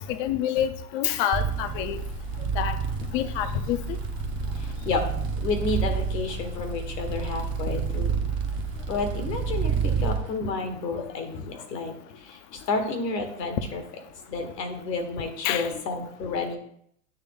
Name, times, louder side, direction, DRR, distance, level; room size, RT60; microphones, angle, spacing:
voice 1, 0.1-2.0 2.6-2.8 3.1-4.0 15.4-15.7, left 10 dB, 35° left, 11 dB, 0.5 m, -27 dB
sound 1, 1.3-10.2, right 5 dB, 25° right, 0.6 m, -29 dB
voice 2, 5.4-8.1 8.9-11.9 12.2-13.8 14.3-16.6, left 3 dB, 75° left, 5 dB, 1.7 m, -30 dB
8.9 x 3.4 x 3.7 m, 0.67 s
hypercardioid pair, 120°, 49 cm